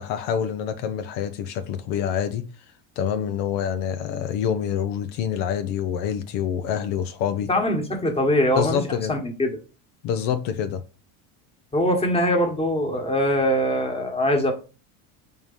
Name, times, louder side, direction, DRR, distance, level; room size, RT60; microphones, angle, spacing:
voice 1, 0.0-2.4 3.0-7.5 8.5-9.2 10.0-10.8, left 8 dB, 70° left, 0.9 m, -26 dB
voice 2, 7.5-8.8 9.1-9.5 11.7-14.5, equal, 15° left, 1.5 m, -22 dB
4.6 x 3.8 x 5.6 m
cardioid pair, 130°, 42 cm